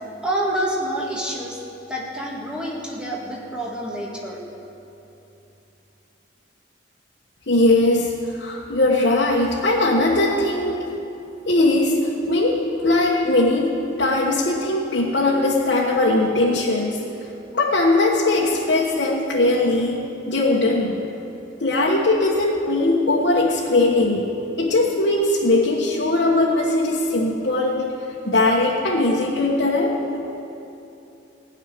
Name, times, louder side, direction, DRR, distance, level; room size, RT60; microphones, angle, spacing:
voice 1, 0.2-1.6 1.9-4.4, right 1 dB, 5° right, -3 dB, 1.9 m, -27 dB
voice 2, 7.5-10.8 11.5-17.0 17.5-21.0 21.6-24.3 24.6-27.9 28.2-30.0, left 2 dB, 60° left, -4 dB, 1.3 m, -20 dB
16.0 x 6.6 x 9.9 m, 2.9 s
head